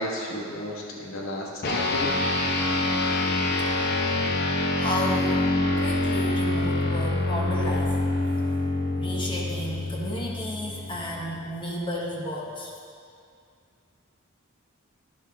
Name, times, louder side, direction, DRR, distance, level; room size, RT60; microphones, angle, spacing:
voice 1, 0.0-2.2, equal, 75° left, -2 dB, 1.4 m, -33 dB
sound 1, 1.6-11.3, left 2 dB, 55° left, 0.9 m, -26 dB
voice 2, 4.8-5.5 5.8-8.0 9.0-12.7, left 1 dB, 25° left, -2 dB, 1.0 m, -32 dB
11.5 x 10.0 x 3.5 m, 2.4 s
head